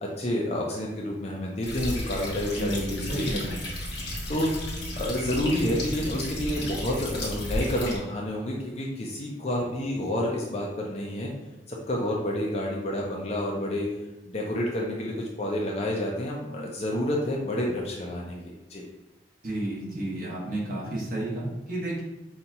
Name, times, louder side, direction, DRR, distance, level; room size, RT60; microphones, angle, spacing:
voice 1, 0.0-3.4 4.3-4.5 5.0-11.3 11.7-13.9 14.2-18.8, left 1 dB, 35° left, -2 dB, 0.5 m, -29 dB
sound 1, 1.6-8.0, left 1 dB, 80° left, 1.3 m, -33 dB
voice 2, 2.5-3.6 19.4-22.0, right 1 dB, 50° right, -5 dB, 1.3 m, -31 dB
5.3 x 2.4 x 2.8 m, 0.97 s
head